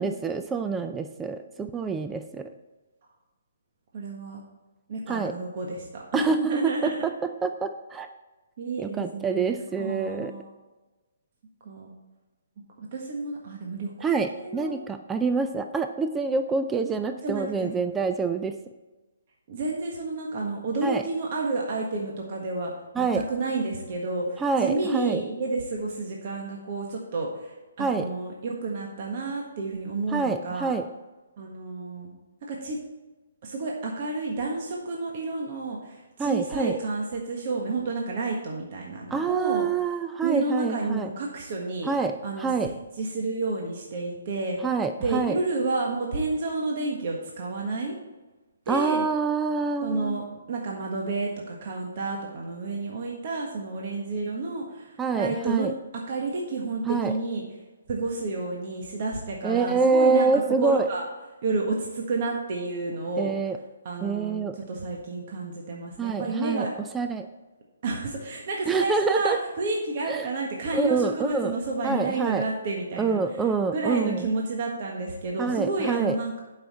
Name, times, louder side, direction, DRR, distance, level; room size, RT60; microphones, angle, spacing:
voice 1, 0.0-2.5 5.1-5.3 6.1-7.1 7.4-8.1 8.8-10.3 14.0-18.6 20.8-21.0 23.0-23.2 24.4-25.2 27.8-28.1 30.1-30.9 36.2-36.8 39.1-41.1 41.8-42.7 44.6-45.4 48.7-50.2 55.0-55.7 56.9-57.2 59.4-60.9 63.2-63.6 64.0-64.6 66.0-66.7 66.9-67.3 68.7-69.4 70.1-70.3 70.7-71.5 71.8-72.5 73.0-74.3 75.4-76.2, right 4 dB, 10° right, 7 dB, 0.4 m, -26 dB
voice 2, 3.9-4.4 4.9-7.0 8.6-10.5 11.6-11.9 12.8-14.8 17.2-17.9 19.5-30.7 31.4-32.1 32.5-32.8 33.4-39.7 40.2-41.9 42.2-44.6 45.0-48.0 48.6-49.0 49.8-55.7 55.9-57.4 57.9-61.1 61.4-63.3 63.8-66.7 67.8-73.2 73.7-76.4, right 3 dB, 45° right, -1 dB, 1.5 m, -30 dB
11.0 x 5.7 x 4.2 m, 1.2 s
hypercardioid pair, 150°, 0 cm